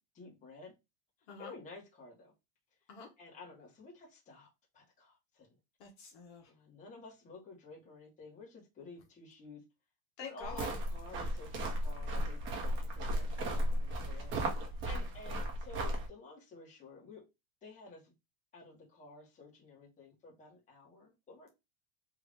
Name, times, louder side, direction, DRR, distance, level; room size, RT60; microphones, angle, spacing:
voice 1, 0.1-0.7 1.4-2.3 3.2-4.5 4.7-5.5 6.5-9.6 10.2-17.2 17.6-18.1 18.5-21.5, left 4 dB, 20° left, 1.5 m, -52 dB
voice 2, 5.8-6.5 10.2-10.7 14.8-15.0, left 5 dB, 50° left, 1.3 m, -48 dB
sound 1, 10.4-16.1, right 1 dB, 30° right, 1.2 m, -35 dB
3.5 x 2.7 x 3.5 m
supercardioid pair, 150°, 37 cm